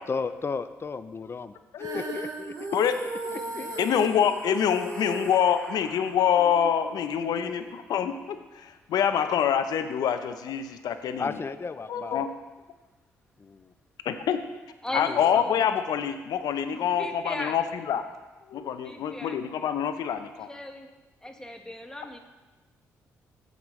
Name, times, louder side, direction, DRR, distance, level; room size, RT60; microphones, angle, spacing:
voice 1, 0.0-1.5 1.8-2.7 3.5-3.7 11.2-12.2 13.4-13.7 15.1-15.4, left 4 dB, 35° left, 13 dB, 0.6 m, -34 dB
Female singing, 1.8-8.0, right 3 dB, 55° right, 1.6 m, -38 dB
voice 2, 3.3-4.1 4.5-6.2 6.7-6.8 14.8-15.6 16.7-17.6 18.8-19.4 20.5-20.9 21.2-22.2, left 1 dB, 10° left, 3 dB, 1.5 m, -39 dB
voice 3, 3.8-8.1 8.6-11.4 11.9-12.3 14.1-14.4 14.9-17.6 17.9-18.0 18.5-20.5, left 8 dB, 65° left, 9 dB, 0.7 m, -26 dB
15.0 x 5.3 x 3.2 m, 1.2 s
hypercardioid pair, 45°, 7 cm